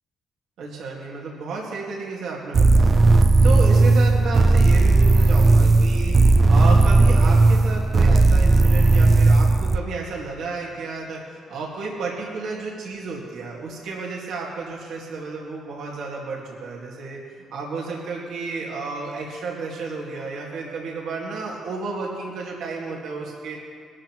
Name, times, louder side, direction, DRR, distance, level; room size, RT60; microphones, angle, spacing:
voice 1, 0.6-23.6, right 4 dB, 80° right, -3 dB, 2.0 m, -32 dB
sound 1, 2.5-9.8, right 3 dB, 40° right, 0.5 m, -15 dB
21.0 x 12.0 x 3.1 m, 2.2 s
cardioid pair, 90°, 0 cm